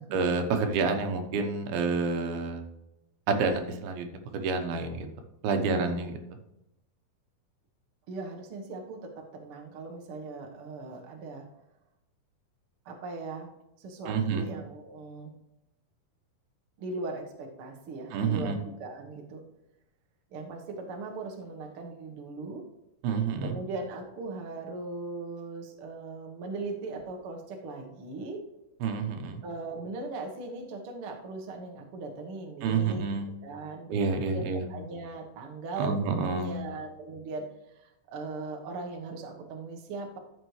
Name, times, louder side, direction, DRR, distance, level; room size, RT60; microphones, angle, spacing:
voice 1, 0.1-2.6 3.3-4.1 4.3-5.1 5.4-6.2 14.1-14.4 18.1-18.6 23.0-23.6 28.8-29.4 32.6-33.3 33.9-34.7 35.8-36.6, right 4 dB, 85° right, 5 dB, 2.9 m, -28 dB
voice 2, 5.5-6.0 8.1-11.4 12.8-13.5 13.8-15.3 16.8-19.4 20.3-22.7 23.4-28.4 29.4-33.1 33.4-37.4 37.8-40.2, right 3 dB, 65° right, 1 dB, 1.4 m, -39 dB
13.0 x 6.6 x 3.2 m, 0.89 s
omnidirectional pair, 4.3 m